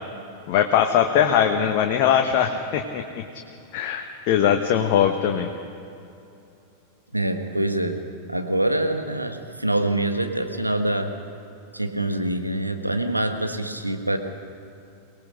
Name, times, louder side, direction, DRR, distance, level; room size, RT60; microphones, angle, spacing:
voice 1, 0.5-3.2 3.7-5.5, left 9 dB, 45° left, 4 dB, 1.2 m, -21 dB
voice 2, 7.1-8.0 8.3-11.1 11.7-14.2, right 1 dB, 85° right, 6 dB, 1.4 m, -25 dB
24.0 x 19.0 x 6.5 m, 2.8 s
figure-of-eight pair, 90°, 0 cm